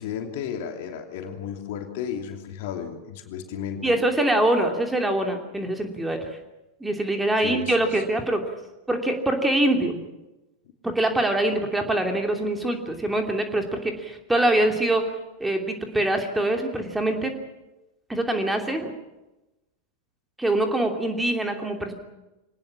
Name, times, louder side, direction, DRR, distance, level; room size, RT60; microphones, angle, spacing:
voice 1, 0.0-3.9 7.4-8.0, left 8 dB, 50° left, 4 dB, 3.0 m, -33 dB
voice 2, 3.8-6.4 6.8-8.4 8.9-10.0 10.8-15.0 15.4-17.3 18.1-18.9 20.4-21.9, right 1 dB, 5° right, 4 dB, 2.8 m, -24 dB
24.5 x 19.0 x 7.4 m, 1.0 s
figure-of-eight pair, 90°, 0 cm